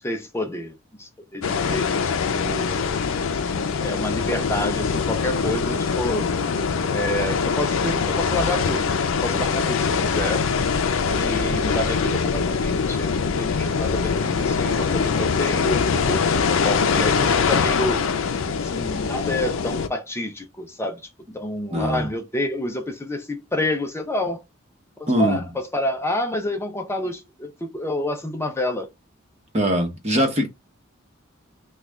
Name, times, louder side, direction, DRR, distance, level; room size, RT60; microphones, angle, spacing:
voice 1, 0.0-3.1 3.8-6.3 6.9-8.9 9.2-10.4 11.1-18.0 18.6-21.0 21.3-24.4 25.0-28.9, left 1 dB, 15° left, 0.5 m, -29 dB
sound 1, 1.4-19.9, left 5 dB, 75° left, 0.5 m, -23 dB
voice 2, 21.7-22.1 25.1-25.4 29.5-30.5, equal, 35° right, 1.0 m, -21 dB
3.1 x 2.3 x 3.6 m
head